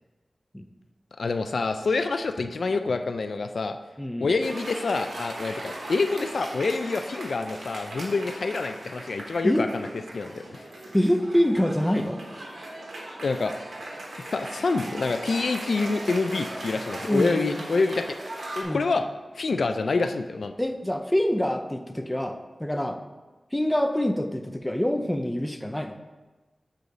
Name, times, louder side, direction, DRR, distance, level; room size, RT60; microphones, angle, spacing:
voice 1, 1.2-3.8 4.2-9.9 10.1-10.7 13.2-13.5 14.2-18.2 18.6-19.1 19.3-20.5, left 3 dB, 85° left, 8 dB, 0.3 m, -27 dB
voice 2, 4.0-4.3 9.4-9.7 10.9-12.2 17.1-17.6 18.6-18.9 20.6-23.0 23.5-26.0, equal, 10° left, 6 dB, 0.5 m, -25 dB
Cheering / Applause, 4.4-18.6, right 1 dB, 90° right, 1.1 m, -38 dB
6.8 x 3.9 x 4.9 m, 1.2 s
wide cardioid pair, 60°, 0 cm